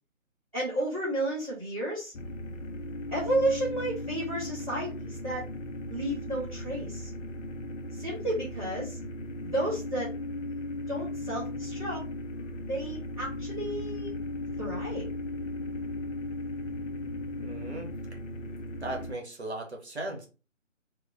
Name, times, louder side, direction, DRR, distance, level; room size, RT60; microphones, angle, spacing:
voice 1, 0.5-2.1 3.1-5.5 5.9-7.1 7.9-9.0 9.4-10.1 10.9-12.0 12.7-14.2 14.6-15.1, right 1 dB, 25° right, -9 dB, 0.9 m, -32 dB
sound 1, 2.1-19.1, left 2 dB, 70° left, 0.5 m, -37 dB
voice 2, 17.4-17.9 18.8-20.3, right 2 dB, 55° right, 1 dB, 0.8 m, -37 dB
2.1 x 2.1 x 3.8 m, 0.33 s
figure-of-eight pair, 175°, 40 cm